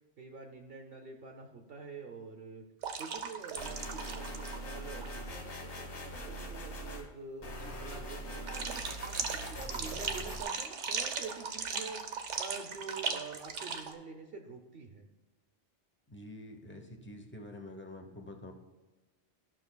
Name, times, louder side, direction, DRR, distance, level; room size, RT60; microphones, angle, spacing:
voice 1, 0.2-2.6 3.0-15.1, right 4 dB, 60° right, 3 dB, 0.8 m, -47 dB
sound 1, 2.8-4.6 4.9-5.1 8.5-13.9, right 5 dB, 90° right, 1.1 m, -37 dB
sound 2, 3.6-7.0 7.4-10.4, equal, 70° left, 1.5 m, -42 dB
voice 2, 16.1-18.5, left 1 dB, 10° left, 3 dB, 0.7 m, -47 dB
14.0 x 6.0 x 2.2 m, 1.1 s
omnidirectional pair, 1.2 m